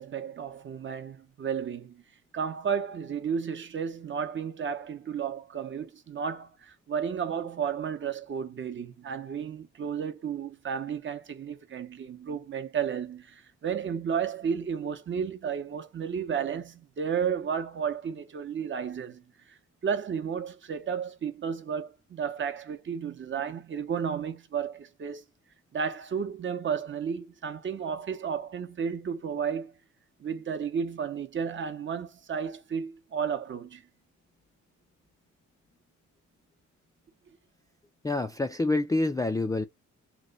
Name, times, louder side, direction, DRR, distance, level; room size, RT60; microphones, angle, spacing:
voice 1, 0.0-2.0 2.3-25.3 25.7-29.7 30.2-33.8, right 7 dB, 40° right, 0.7 m, -33 dB
voice 2, 38.0-39.6, left 2 dB, 10° left, 0.3 m, -27 dB
3.0 x 2.2 x 3.8 m
cardioid pair, 90°, 30 cm